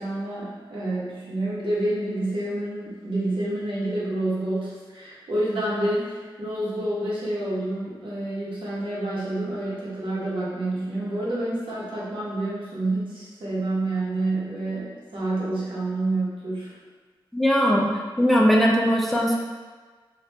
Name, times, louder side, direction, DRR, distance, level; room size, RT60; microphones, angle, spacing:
voice 1, 0.0-16.7, right 1 dB, 75° right, -8 dB, 1.1 m, -28 dB
voice 2, 17.3-17.9 18.2-19.4, equal, ahead, -2 dB, 0.4 m, -19 dB
2.9 x 2.4 x 3.3 m, 1.4 s
wide cardioid pair, 115°, 9 cm